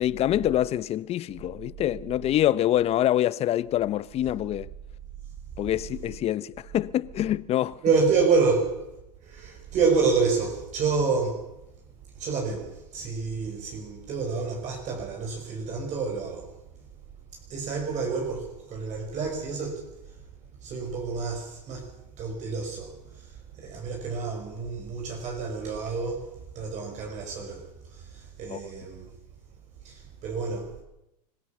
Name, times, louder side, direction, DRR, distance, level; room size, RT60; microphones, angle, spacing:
voice 1, 0.0-4.7 5.6-7.8 28.5-28.6, left 12 dB, 30° left, 0.8 m, -25 dB
voice 2, 7.8-8.8 9.2-11.4 12.2-16.5 17.5-19.9 20.6-21.9 22.2-26.3 26.5-27.6 27.9-29.1 29.8-30.7, right 4 dB, 35° right, 5.8 m, -28 dB
26.0 x 16.5 x 7.3 m
hypercardioid pair, 110°, 21 cm